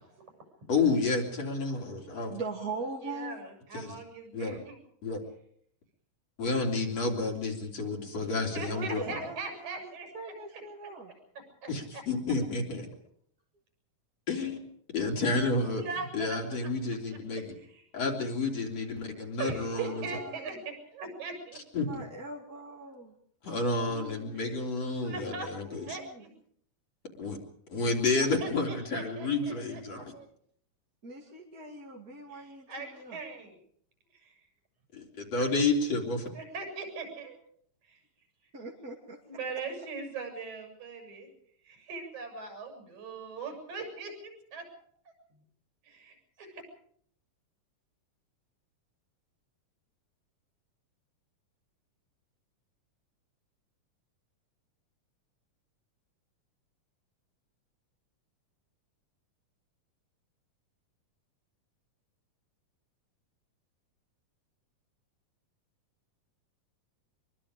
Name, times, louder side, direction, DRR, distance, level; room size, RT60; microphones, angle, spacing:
voice 1, 0.7-2.3 3.7-4.0 4.3-4.6 5.0-5.2 6.4-9.2 11.7-12.9 14.3-14.6 14.9-15.8 16.1-17.6 17.9-20.1 21.7-22.0 23.4-26.0 27.2-27.4 27.7-30.1 34.9-36.3, left 3 dB, 50° left, 0 dB, 4.4 m, -30 dB
voice 2, 2.1-3.4 8.7-11.1 19.7-20.6 21.8-23.1 23.8-24.5 25.6-26.2 31.0-33.2 38.5-39.2, right 3 dB, 30° right, -1 dB, 2.5 m, -42 dB
voice 3, 3.0-4.8 8.2-10.9 11.6-12.0 15.7-16.4 17.4-17.5 19.4-21.6 24.4-24.5 25.0-25.5 25.9-26.3 28.2-30.3 32.3-33.6 34.2-34.3 36.3-37.4 37.9-38.0 39.3-41.3 41.7-44.6 45.8-46.6, right 4 dB, 60° right, 4 dB, 8.8 m, -40 dB
24.5 x 23.5 x 5.1 m, 0.65 s
omnidirectional pair, 3.8 m